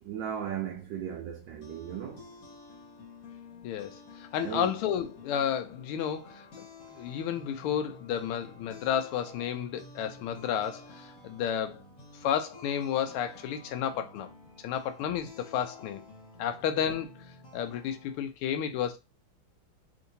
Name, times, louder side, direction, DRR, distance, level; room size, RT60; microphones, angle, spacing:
voice 1, 0.0-2.3 4.4-4.7, right 9 dB, 75° right, 1.1 m, -36 dB
sound 1, 1.3-18.3, left 2 dB, 50° left, 1.3 m, -51 dB
voice 2, 3.6-6.7 6.9-11.8 12.2-14.3 14.6-16.0 16.4-17.1 17.5-19.0, left 9 dB, 80° left, 1.5 m, -32 dB
3.7 x 2.6 x 2.6 m
omnidirectional pair, 2.4 m